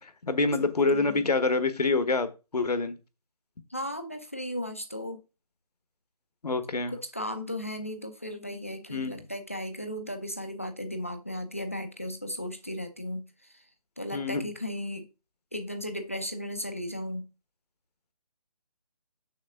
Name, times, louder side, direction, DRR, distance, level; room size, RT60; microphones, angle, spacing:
voice 1, 0.0-3.0 6.4-6.9 8.9-9.2 14.1-14.5, left 3 dB, 75° left, 1.3 m, -26 dB
voice 2, 0.6-1.3 3.7-5.2 6.9-13.6 14.0-15.1 15.5-17.3, equal, 20° left, 0.5 m, -36 dB
6.5 x 6.4 x 3.6 m
hypercardioid pair, 180°, 20 cm